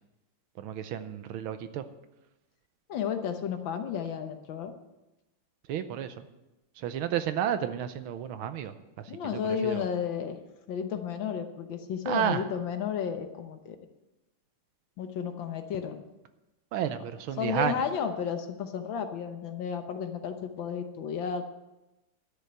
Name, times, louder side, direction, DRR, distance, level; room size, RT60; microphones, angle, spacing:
voice 1, 0.6-1.8 5.7-6.2 6.8-8.7 9.6-9.8 12.1-12.4 16.7-17.8, right 10 dB, 75° right, 11 dB, 1.5 m, -31 dB
voice 2, 2.9-4.7 9.1-10.4 10.7-13.8 15.0-16.0 17.4-21.5, left 7 dB, 65° left, 7 dB, 1.6 m, -32 dB
12.0 x 6.7 x 7.8 m, 1.0 s
omnidirectional pair, 2.4 m